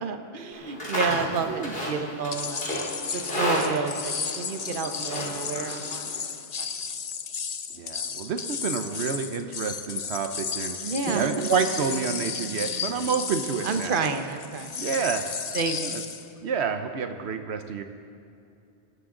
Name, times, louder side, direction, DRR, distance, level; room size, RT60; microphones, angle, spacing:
voice 1, 0.0-2.7 2.9-6.1 6.6-6.7 10.8-11.3 13.6-14.9 15.5-15.8, right 5 dB, 55° right, 6 dB, 1.1 m, -30 dB
Livestock farm animals working animals, 0.5-6.2, equal, 60° left, 3.2 m, -32 dB
sound 1, 2.3-16.3, left 6 dB, 45° left, 0.7 m, -34 dB
voice 2, 7.7-10.8 11.1-13.9 14.8-15.3 15.8-16.0 16.4-17.8, right 6 dB, 80° right, 7 dB, 1.1 m, -29 dB
sound 2, 11.1-14.5, right 4 dB, ahead, 1.2 m, -39 dB
25.0 x 13.0 x 3.8 m, 2.6 s
omnidirectional pair, 1.1 m